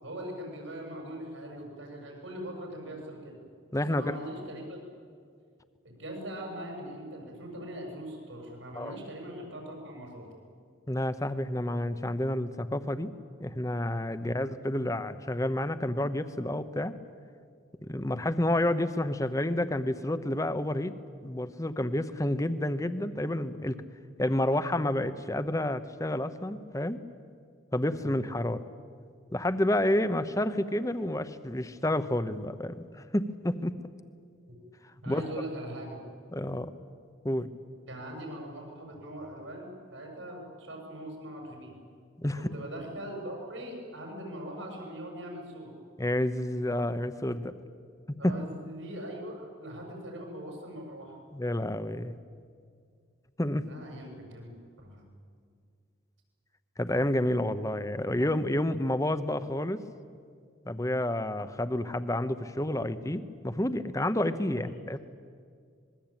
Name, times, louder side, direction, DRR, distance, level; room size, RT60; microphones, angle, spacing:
voice 1, 0.0-3.4 3.9-4.8 5.8-10.3 14.2-14.3 27.9-28.2 34.5-34.6 35.0-36.0 37.9-41.7 42.4-45.7 48.2-51.2 53.6-54.5 54.8-55.1 64.6-64.8, right 1 dB, 85° right, 1 dB, 7.7 m, -41 dB
voice 2, 3.7-4.1 8.8-9.0 10.9-13.1 13.4-17.0 17.8-21.0 21.2-23.8 24.2-27.0 27.7-28.7 29.3-33.8 35.1-35.2 36.3-36.7 37.2-37.5 42.2-42.4 46.0-47.5 48.1-48.4 51.3-52.2 53.4-53.7 56.8-59.8 60.7-65.0, left 1 dB, 15° left, 12 dB, 0.9 m, -29 dB
25.5 x 21.5 x 9.0 m, 2.2 s
head